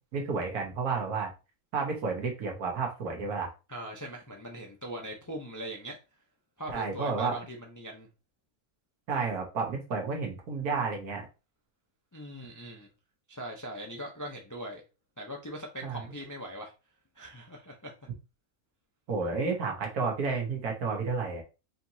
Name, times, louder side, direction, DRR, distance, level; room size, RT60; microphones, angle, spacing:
voice 1, 0.1-1.3 1.7-3.5 6.7-7.4 9.1-11.2 15.8-16.0 19.1-21.4, right 4 dB, 85° right, 1.7 m, -31 dB
voice 2, 3.7-6.0 6.6-8.1 12.1-12.9 13.3-14.8 15.2-16.7 17.2-17.9, right 1 dB, 25° left, 0.4 m, -40 dB
5.1 x 2.9 x 2.7 m
omnidirectional pair, 1.5 m